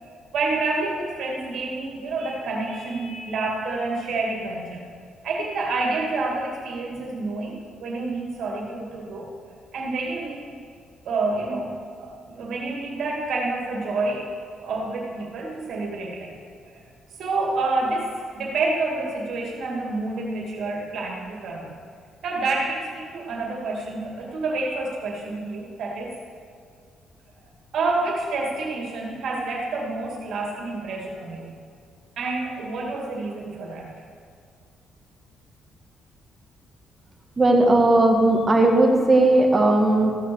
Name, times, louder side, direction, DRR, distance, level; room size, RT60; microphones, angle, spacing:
voice 1, 0.0-4.8 5.2-10.4 11.0-14.3 14.6-16.4 16.7-16.8 17.2-21.7 22.2-26.2 27.7-31.5 32.2-33.9, right 3 dB, 70° right, -1 dB, 2.6 m, -28 dB
voice 2, 37.4-40.2, right 2 dB, 25° right, 1 dB, 1.9 m, -17 dB
15.0 x 6.3 x 6.3 m, 2.1 s
cardioid pair, 90°, 0 cm